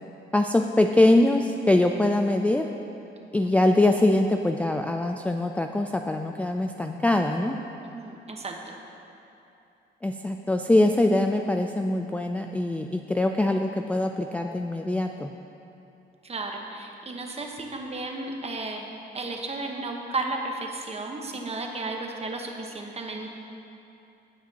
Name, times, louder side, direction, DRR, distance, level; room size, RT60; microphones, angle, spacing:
voice 1, 0.3-2.7 3.3-7.6 10.0-15.3, left 1 dB, 5° left, 3 dB, 0.3 m, -23 dB
voice 2, 3.2-3.5 7.8-8.7 16.2-23.3, right 2 dB, 30° right, 2 dB, 1.1 m, -34 dB
17.0 x 5.9 x 2.9 m, 2.8 s
cardioid pair, 90°, 20 cm